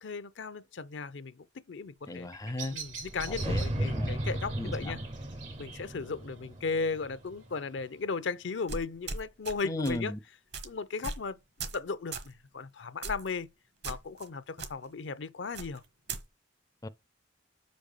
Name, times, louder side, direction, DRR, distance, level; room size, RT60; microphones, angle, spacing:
voice 1, 0.0-2.3 2.7-5.0 5.6-10.1 10.6-11.4 11.7-13.5 13.8-15.8, left 4 dB, 70° left, 0.5 m, -36 dB
Bird vocalization bird call bird song, 2.0-8.0, right 6 dB, 90° right, 3.1 m, -47 dB
voice 2, 2.1-2.8 3.3-4.1 4.5-4.9 9.6-10.2 16.8-16.9, left 1 dB, 20° left, 0.4 m, -36 dB
sound 1, 2.8-7.8, right 1 dB, 30° right, 0.6 m, -35 dB
sound 2, 8.7-9.6 9.8-10.1 10.5-10.7 11.0-11.3 11.6-11.8 12.1-12.3 13.0-13.3 13.8-14.3 14.6-14.7 15.5-16.2, right 4 dB, 60° right, 1.3 m, -38 dB
5.3 x 5.2 x 6.6 m
head